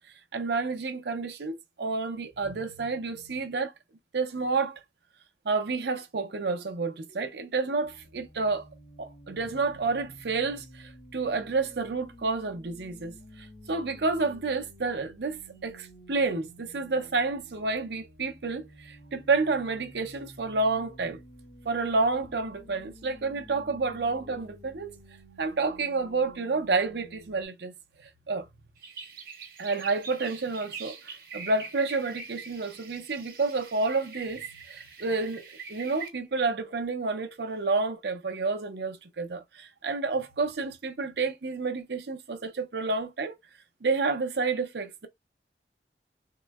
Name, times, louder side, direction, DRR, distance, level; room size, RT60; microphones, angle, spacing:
voice 1, 0.3-3.7 4.1-4.8 5.4-8.7 9.0-21.2 21.6-25.0 25.4-27.7 28.0-28.5 29.6-43.3 43.8-45.1, right 3 dB, 70° right, 0.6 m, -30 dB
sound 1, 7.8-27.5, equal, 75° left, 1.6 m, -51 dB
sound 2, 28.8-36.1, right 5 dB, 55° right, 1.0 m, -43 dB
3.7 x 2.1 x 2.2 m
head